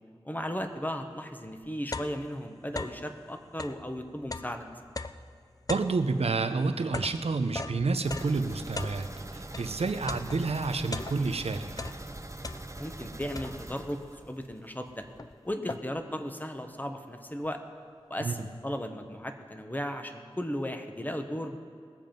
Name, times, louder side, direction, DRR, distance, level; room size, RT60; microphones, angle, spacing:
voice 1, 0.2-4.7 12.8-15.0 15.4-17.6 18.1-21.6, equal, 15° left, 6 dB, 1.2 m, -36 dB
sound 1, 1.5-3.1 3.5-9.7 10.1-11.4 11.7-13.0 13.4-13.9 14.5-14.6 14.9-16.1, left 3 dB, 35° left, 0.5 m, -40 dB
voice 2, 5.7-9.1 9.3-11.9 18.2-18.3, right 3 dB, 80° right, 9 dB, 0.7 m, -29 dB
sound 2, 8.0-14.7 15.0-15.1 15.5-15.6, right 2 dB, 30° right, 0.9 m, -43 dB
20.5 x 7.4 x 5.3 m, 2.1 s
cardioid pair, 40°, 10 cm